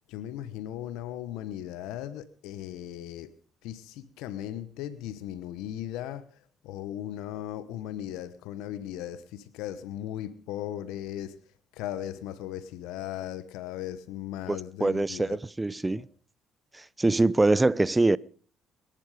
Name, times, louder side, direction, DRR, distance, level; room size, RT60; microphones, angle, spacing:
voice 1, 0.1-3.3 3.6-11.4 11.7-15.4 15.9-16.0, left 12 dB, 80° left, 1.1 m, -37 dB
voice 2, 14.5-16.1 16.7-18.2, right 2 dB, 15° right, 0.6 m, -24 dB
22.5 x 11.5 x 5.1 m
supercardioid pair, 65°, 0 cm